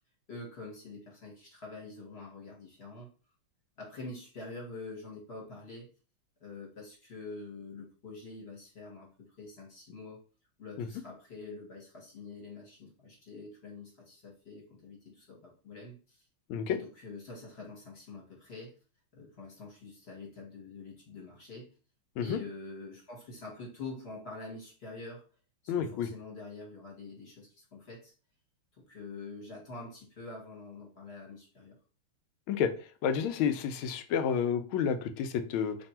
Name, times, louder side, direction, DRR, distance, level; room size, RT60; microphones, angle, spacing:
voice 1, 0.3-3.1 3.8-5.9 6.4-10.2 10.6-16.2 16.7-18.7 19.1-21.7 22.2-25.2 25.6-28.1 28.8-31.7, left 3 dB, 35° left, -2 dB, 1.1 m, -46 dB
voice 2, 25.7-26.1 32.5-32.7 33.0-35.8, left 7 dB, 80° left, 9 dB, 1.4 m, -30 dB
3.3 x 2.7 x 4.2 m, 0.36 s
omnidirectional pair, 2.3 m